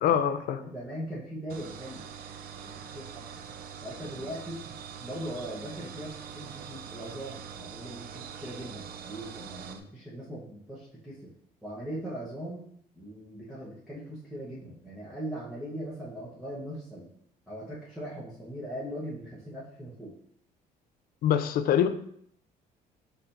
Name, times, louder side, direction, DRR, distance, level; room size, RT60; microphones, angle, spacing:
voice 1, 0.0-0.6 21.2-21.9, left 9 dB, 60° left, 0.4 m, -24 dB
voice 2, 0.6-2.1 2.3-3.2 3.8-4.6 5.0-11.3 11.6-12.7 12.9-17.1 17.5-20.1, right 1 dB, ahead, 1.0 m, -40 dB
sound 1, 1.5-9.8, right 7 dB, 60° right, 0.4 m, -43 dB
4.4 x 4.0 x 2.6 m
cardioid pair, 110°, 17 cm